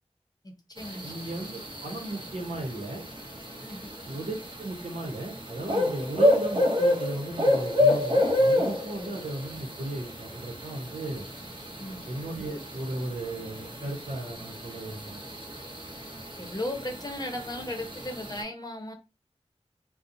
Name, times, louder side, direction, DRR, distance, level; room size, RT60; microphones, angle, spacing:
voice 1, 0.4-1.1 3.6-4.0 8.9-9.1 11.8-12.1 16.4-18.9, left 1 dB, 35° left, 2 dB, 0.7 m, -36 dB
sound 1, 0.8-18.4, left 1 dB, 45° right, 0.7 m, -30 dB
voice 2, 1.0-3.1 4.1-11.3 12.0-15.2, right 2 dB, 90° right, 0 dB, 0.8 m, -35 dB
2.8 x 2.1 x 2.5 m, 0.29 s
wide cardioid pair, 45°, 11 cm